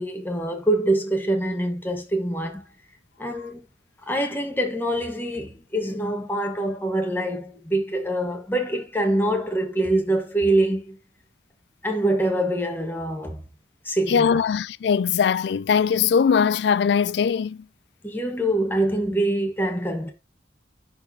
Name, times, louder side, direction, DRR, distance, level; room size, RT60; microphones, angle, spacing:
voice 1, 0.0-2.6 3.2-3.6 4.1-11.0 11.8-13.4 13.8-14.4 18.0-20.1, right 1 dB, 10° left, 1.2 m, -25 dB
voice 2, 14.1-17.6, left 6 dB, 65° left, 0.3 m, -21 dB
11.0 x 4.1 x 2.7 m
head